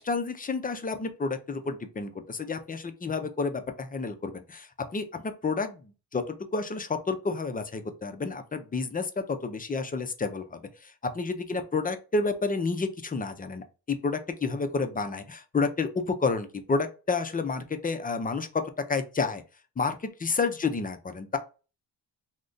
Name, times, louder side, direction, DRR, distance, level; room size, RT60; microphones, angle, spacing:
voice 1, 0.0-5.8 6.1-19.4 19.8-21.4, left 4 dB, 20° left, 0.3 m, -30 dB
2.5 x 2.1 x 3.7 m
cardioid pair, 105°, 45 cm